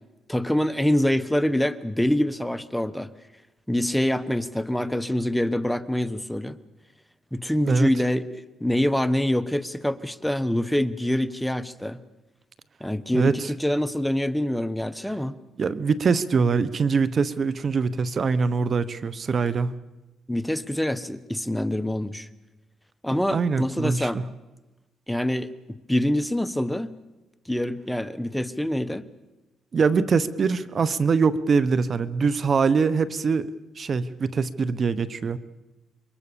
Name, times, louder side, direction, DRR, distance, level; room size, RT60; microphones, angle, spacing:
voice 1, 0.3-3.1 3.7-6.6 7.3-12.0 12.8-15.3 20.3-22.3 23.0-24.2 25.1-26.9 27.5-29.0, left 1 dB, 5° left, 12 dB, 1.1 m, -25 dB
voice 2, 13.1-13.5 15.6-19.7 23.3-24.2 29.7-33.5 33.8-35.4, right 5 dB, 45° right, 15 dB, 1.0 m, -23 dB
27.5 x 23.5 x 7.0 m, 1.1 s
cardioid pair, 90°, 0 cm